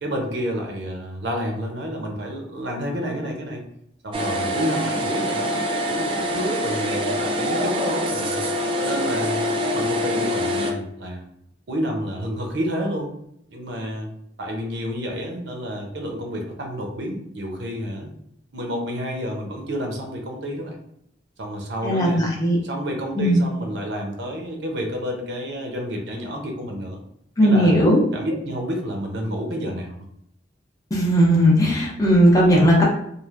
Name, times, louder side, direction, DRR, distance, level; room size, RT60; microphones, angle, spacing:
voice 1, 0.0-3.6 4.0-8.4 8.7-9.4 9.7-11.2 11.7-13.1 13.5-14.1 14.4-18.1 18.5-20.8 21.4-22.2 22.6-27.0 27.4-27.8 28.1-30.0, equal, 65° right, 1 dB, 0.6 m, -29 dB
sound 1, 4.1-10.7, equal, 30° right, 0.3 m, -25 dB
voice 2, 21.8-22.6 23.2-23.4 27.4-28.0 30.9-32.8, equal, 20° left, -4 dB, 0.6 m, -17 dB
3.1 x 2.5 x 2.4 m, 0.73 s
head